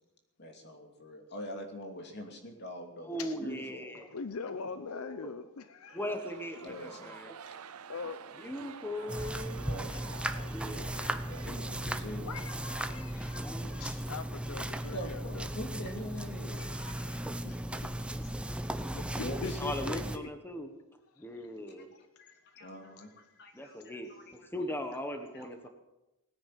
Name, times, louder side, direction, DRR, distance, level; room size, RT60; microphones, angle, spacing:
voice 1, 0.4-3.1 3.4-3.8 6.6-7.2 9.6-10.0 11.2-12.3 14.9-16.7 18.9-19.6 22.2-23.8 24.1-24.2 25.3-25.5, equal, 50° left, 4 dB, 2.9 m, -43 dB
voice 2, 3.0-4.1 4.8-5.3 5.9-7.4 8.4-11.0 13.4-13.7 17.8-18.6 19.4-20.7 21.2-21.9 23.5-25.7, left 1 dB, 10° left, 6 dB, 1.4 m, -40 dB
voice 3, 4.1-6.0 7.9-8.3 8.7-9.3 9.9-11.3 12.3-15.5 16.5-17.6 18.0-18.1 19.2-20.3 21.2-21.3 21.9-22.0, left 5 dB, 75° left, 11 dB, 0.7 m, -43 dB
sound 1, 5.8-14.3, right 7 dB, 80° right, 0.7 m, -50 dB
sound 2, 9.1-20.2, right 1 dB, 5° right, 0.8 m, -36 dB
18.0 x 9.9 x 7.6 m, 0.95 s
head